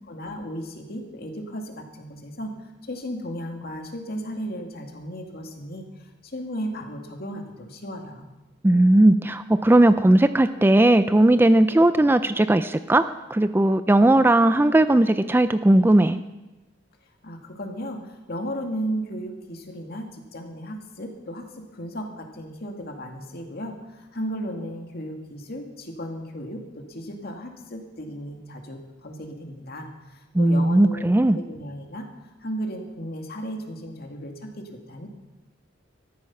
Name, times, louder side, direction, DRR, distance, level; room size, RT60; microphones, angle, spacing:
voice 1, 0.0-2.5 2.8-5.8 6.2-8.3 17.2-31.0 31.3-32.1 32.4-35.1, equal, 55° left, 3 dB, 2.1 m, -35 dB
voice 2, 8.6-16.2 30.3-31.4, right 1 dB, 10° right, 11 dB, 0.4 m, -18 dB
13.5 x 12.5 x 5.9 m, 1.1 s
head